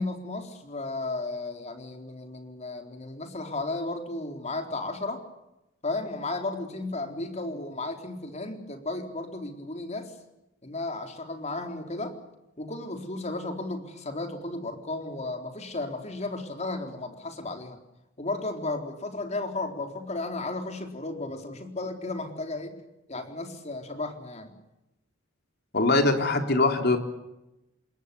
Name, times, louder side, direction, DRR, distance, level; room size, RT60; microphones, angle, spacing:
voice 1, 0.0-5.2 5.8-10.1 10.6-12.2 12.6-17.8 18.2-22.8 23.1-24.5, left 2 dB, 35° left, 5 dB, 4.0 m, -34 dB
voice 2, 25.7-27.0, left 2 dB, 55° left, 5 dB, 3.9 m, -22 dB
27.5 x 21.5 x 7.0 m, 0.93 s
head